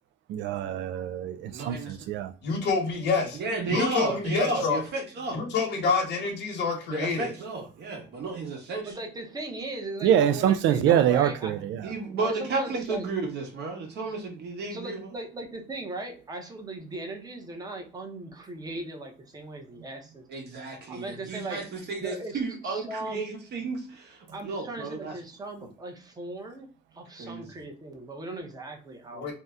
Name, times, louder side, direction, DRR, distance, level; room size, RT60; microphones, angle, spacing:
voice 1, 0.3-2.3 10.0-11.8, right 10 dB, 85° right, 0.4 m, -24 dB
voice 2, 1.5-2.0 3.4-5.5 6.9-8.9 11.8-15.1 20.3-25.1 27.2-27.5, right 3 dB, 60° right, 1.0 m, -32 dB
voice 3, 2.4-3.4 3.6-4.8 5.3-7.3 29.1-29.3, left 4 dB, 65° left, 1.0 m, -27 dB
voice 4, 8.8-11.6 12.2-13.1 14.7-20.2 20.9-21.6 22.0-23.2 24.3-26.7 26.9-29.3, right 2 dB, 20° right, 0.7 m, -38 dB
2.7 x 2.1 x 3.5 m
cardioid pair, 145°, 19 cm